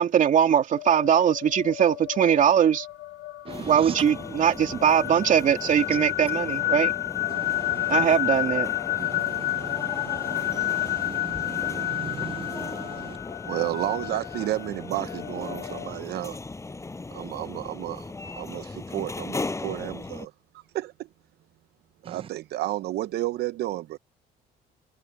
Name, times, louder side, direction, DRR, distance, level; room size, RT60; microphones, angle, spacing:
voice 1, 0.0-2.9 3.6-6.9 7.9-8.7, right 8 dB, 50° right, 2.8 m, -21 dB
sound 1, 0.7-15.9, left 17 dB, 85° left, 3.8 m, -31 dB
sound 2, 3.5-20.3, left 3 dB, 15° left, 6.3 m, -38 dB
voice 2, 7.3-7.8 9.1-9.8 10.1-12.7, right 8 dB, 35° right, 0.5 m, -39 dB
voice 3, 13.4-16.4 17.1-18.1 18.3-20.3 20.7-21.1 22.1-24.0, right 15 dB, 70° right, 0.8 m, -31 dB
cardioid pair, 110°, 17 cm